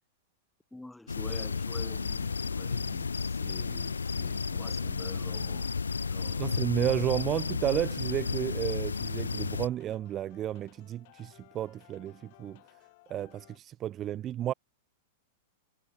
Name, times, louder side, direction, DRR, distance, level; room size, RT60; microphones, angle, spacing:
voice 1, 0.7-5.7 6.1-6.5, left 2 dB, 5° left, 2.1 m, -48 dB
sound 1, 1.1-9.7, left 5 dB, 85° left, 0.5 m, -32 dB
sound 2, 5.8-13.6, left 23 dB, 55° left, 5.6 m, -61 dB
voice 2, 6.4-12.6 13.1-14.5, right 11 dB, 30° right, 0.5 m, -32 dB
hypercardioid pair, 100°, 0 cm